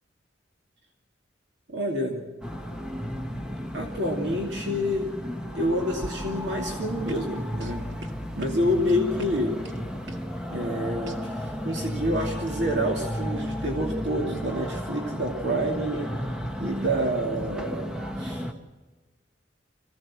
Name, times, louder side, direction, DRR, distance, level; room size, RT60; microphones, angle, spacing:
voice 1, 1.7-2.2 3.7-5.1 5.5-7.9 8.4-9.5 10.5-16.1 16.6-18.4, equal, 65° right, 1 dB, 2.7 m, -28 dB
sound 1, 2.4-18.5, equal, 5° right, 1.2 m, -33 dB
sound 2, 6.0-12.6, right 1 dB, 80° right, 2.0 m, -46 dB
25.5 x 17.0 x 7.6 m, 1.4 s
head